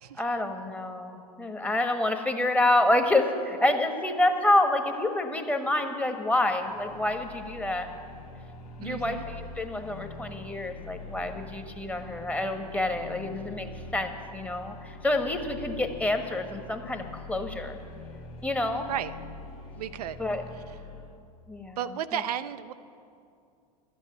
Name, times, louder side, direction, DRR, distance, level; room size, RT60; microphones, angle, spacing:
voice 1, 0.2-7.9 8.8-13.7 13.9-17.8 18.4-18.9 20.2-20.4 21.5-21.8, left 1 dB, 5° left, 5 dB, 1.2 m, -27 dB
sound 1, 6.4-21.2, left 2 dB, 65° left, 1.7 m, -44 dB
voice 2, 8.8-9.2 18.9-19.1 19.8-20.2 21.8-22.7, right 9 dB, 70° right, 11 dB, 0.5 m, -33 dB
11.5 x 8.3 x 9.4 m, 2.4 s
hypercardioid pair, 90°, 20 cm